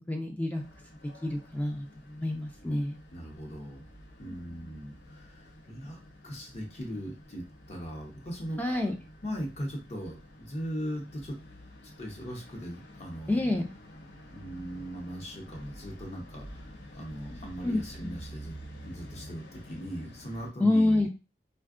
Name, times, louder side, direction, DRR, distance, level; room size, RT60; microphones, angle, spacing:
voice 1, 0.1-0.6 1.2-3.0 4.2-4.7 8.6-8.9 13.3-13.7 17.3-18.1 20.6-21.1, left 2 dB, 10° left, 4 dB, 0.3 m, -28 dB
sound 1, 0.5-20.5, equal, 70° left, 0.7 m, -49 dB
voice 2, 3.1-3.9 4.2-6.0 6.2-8.9 9.2-11.4 12.0-13.6 14.3-18.5 18.8-21.1, equal, 40° left, 1 dB, 0.8 m, -39 dB
3.4 x 2.2 x 2.4 m, 0.31 s
head